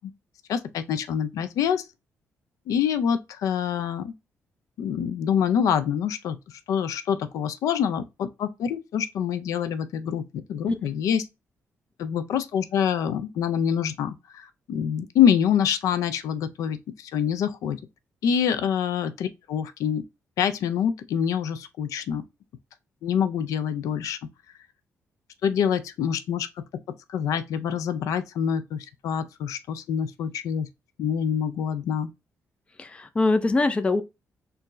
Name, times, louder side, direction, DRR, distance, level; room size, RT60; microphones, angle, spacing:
voice 1, 0.5-1.9 2.7-4.1 4.8-11.2 12.0-17.8 18.2-20.0 20.4-22.2 23.0-24.2 25.4-26.5 27.1-30.7 31.0-32.1, left 8 dB, 90° left, 0.4 m, -26 dB
voice 2, 32.8-34.0, left 3 dB, 20° left, 0.4 m, -23 dB
4.4 x 2.6 x 3.0 m
cardioid pair, 130°, 6 cm